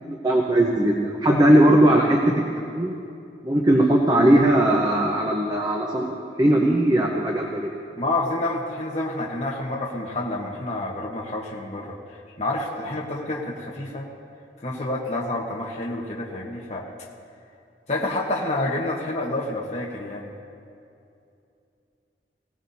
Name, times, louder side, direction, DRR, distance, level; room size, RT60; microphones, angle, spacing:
voice 1, 0.0-3.0 3.4-6.1 6.4-7.7, right 1 dB, 20° right, 0 dB, 0.8 m, -19 dB
voice 2, 8.0-14.1 14.6-16.9 17.9-20.3, left 2 dB, 40° left, -3 dB, 1.2 m, -28 dB
19.5 x 16.5 x 2.7 m, 2.6 s
head